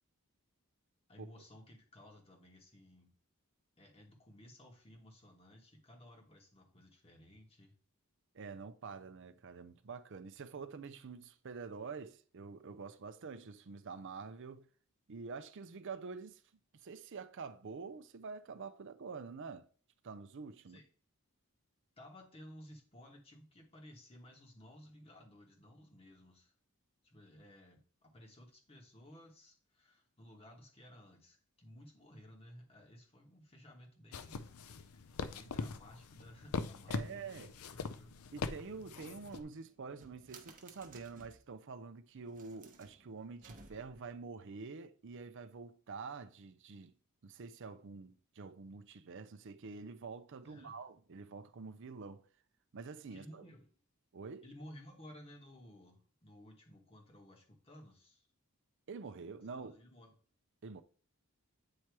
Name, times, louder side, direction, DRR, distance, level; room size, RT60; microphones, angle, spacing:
voice 1, 1.1-3.1 3.8-7.7 20.7-20.8 22.0-26.5 27.0-34.5 34.8-38.2 50.4-50.8 53.1-53.7 54.4-58.3 59.5-60.2, equal, 25° left, 1.4 m, -57 dB
voice 2, 8.3-14.7 15.1-16.4 16.8-19.7 20.0-20.8 36.9-37.5 38.3-46.9 47.2-52.2 52.7-53.4 54.1-54.4 58.9-59.7 60.6-60.8, right 4 dB, 55° right, 0.5 m, -47 dB
sound 1, 34.1-39.4, left 4 dB, 70° left, 0.5 m, -42 dB
sound 2, 39.1-41.5 42.2-44.1, right 3 dB, 35° right, 0.9 m, -59 dB
8.6 x 3.0 x 4.6 m
head